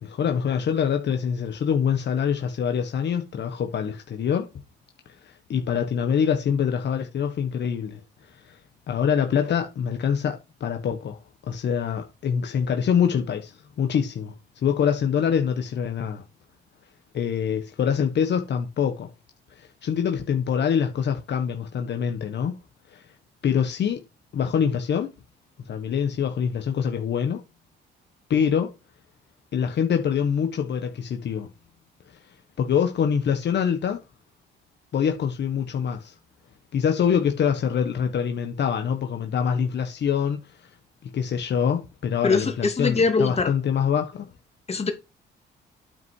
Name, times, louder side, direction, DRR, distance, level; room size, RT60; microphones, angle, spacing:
voice 1, 0.0-4.5 5.2-8.0 8.5-8.6 8.9-11.2 11.5-14.3 14.6-16.2 17.1-19.1 19.6-22.6 22.9-23.0 23.4-24.0 24.3-25.1 25.7-27.4 28.3-28.7 29.5-31.5 32.6-34.0 34.9-36.1 36.7-40.7 41.1-44.3, left 7 dB, 60° left, 1.5 m, -25 dB
voice 2, 42.2-43.5 44.7-44.9, left 4 dB, 30° left, 2.6 m, -22 dB
9.1 x 5.6 x 4.9 m
cardioid pair, 90°, 20 cm